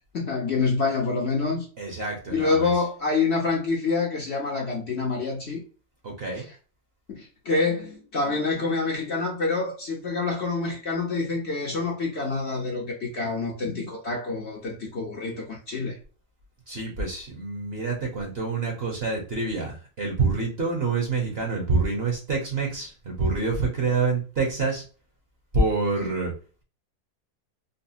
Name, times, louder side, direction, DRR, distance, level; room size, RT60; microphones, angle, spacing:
voice 1, 0.1-1.7 2.3-5.6 6.3-6.5 7.1-16.0, left 4 dB, 50° left, 0.9 m, -27 dB
voice 2, 1.8-2.7 6.0-6.4 16.7-24.8 25.5-26.3, right 3 dB, 45° right, 1.0 m, -27 dB
4.0 x 2.1 x 2.6 m
omnidirectional pair, 1.7 m